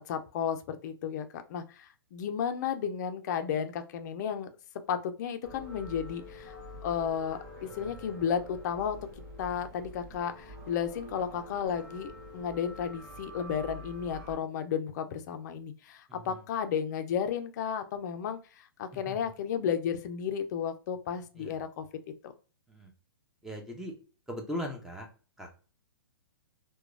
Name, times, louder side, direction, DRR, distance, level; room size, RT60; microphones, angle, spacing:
voice 1, 0.1-4.5 4.9-9.0 9.4-21.9 22.2-22.3, left 8 dB, 45° left, 8 dB, 0.4 m, -33 dB
sound 1, 5.4-14.4, left 1 dB, 35° right, 0.8 m, -46 dB
voice 2, 16.1-16.4 19.1-19.2 21.4-21.6 22.7-22.9 23.4-23.9 24.3-25.1 25.4-25.5, equal, 5° right, 1 dB, 0.5 m, -39 dB
2.9 x 2.2 x 2.4 m, 0.37 s
hypercardioid pair, 135°, 13 cm